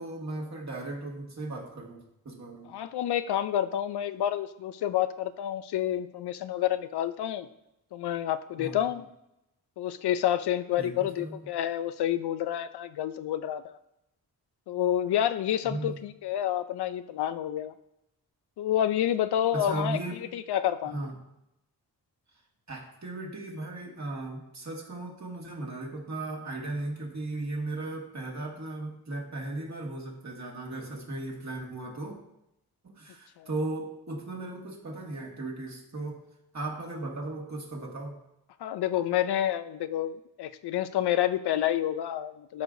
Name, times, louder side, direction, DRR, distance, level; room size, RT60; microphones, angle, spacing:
voice 1, 0.0-2.7 8.6-8.9 10.8-11.5 15.6-16.0 19.5-20.2 20.9-21.1 22.7-32.2 32.8-36.2 36.5-38.1, right 2 dB, 45° right, -1 dB, 1.9 m, -36 dB
voice 2, 2.7-7.5 7.9-9.0 9.8-13.8 14.7-17.7 18.6-20.0 20.3-21.1 33.4-33.5 38.6-42.6, left 11 dB, 80° left, 12 dB, 0.5 m, -29 dB
12.5 x 4.7 x 2.6 m, 0.85 s
cardioid pair, 60°, 39 cm